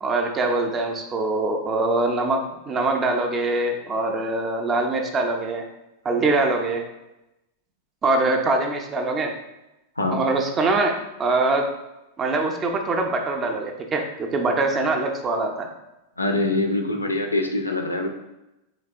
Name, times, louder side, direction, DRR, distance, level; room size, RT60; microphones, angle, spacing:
voice 1, 0.0-5.7 6.0-6.8 8.0-9.3 10.1-11.7 12.2-15.7, right 2 dB, 25° right, 3 dB, 0.4 m, -23 dB
voice 2, 16.2-18.1, left 2 dB, 80° left, 4 dB, 0.4 m, -24 dB
3.2 x 2.8 x 2.4 m, 0.94 s
figure-of-eight pair, 90°, 0 cm